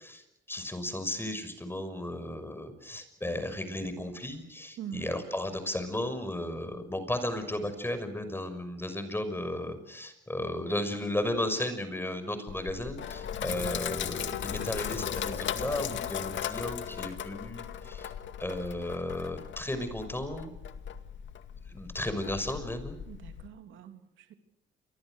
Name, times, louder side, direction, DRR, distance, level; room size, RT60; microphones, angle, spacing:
voice 1, 0.0-18.1 18.4-20.5 21.7-23.0, left 1 dB, 10° left, 10 dB, 6.2 m, -34 dB
voice 2, 4.8-5.1 23.1-24.3, right 9 dB, 80° right, 6 dB, 3.2 m, -43 dB
Sink (filling or washing), 12.5-23.5, left 9 dB, 70° left, 2.2 m, -37 dB
29.0 x 24.0 x 6.6 m, 0.85 s
cardioid pair, 90°, 20 cm